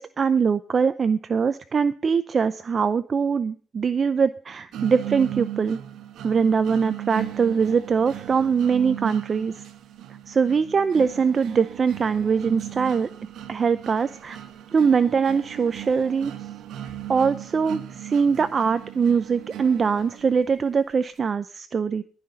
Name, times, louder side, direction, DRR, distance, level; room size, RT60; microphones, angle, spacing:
voice 1, 0.0-5.8 6.2-9.6 10.3-13.1 13.5-14.4 14.7-16.3 17.1-22.0, right 6 dB, 40° right, 13 dB, 0.5 m, -22 dB
sound 1, 4.7-20.7, right 12 dB, 80° right, 1.2 m, -37 dB
15.5 x 5.7 x 6.6 m, 0.41 s
cardioid pair, 90°, 0 cm